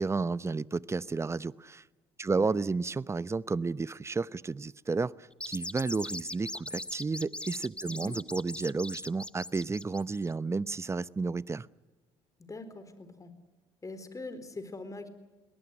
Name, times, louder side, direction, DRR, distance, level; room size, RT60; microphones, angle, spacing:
voice 1, 0.0-1.8 2.2-11.7, right 4 dB, 20° right, 20 dB, 0.8 m, -32 dB
sound 1, 5.3-10.3, left 1 dB, 10° left, 1.0 m, -40 dB
voice 2, 7.8-8.2 12.4-13.3 13.8-15.1, left 2 dB, 25° left, 11 dB, 4.2 m, -43 dB
22.0 x 19.0 x 9.6 m, 1.2 s
hypercardioid pair, 60°, 13 cm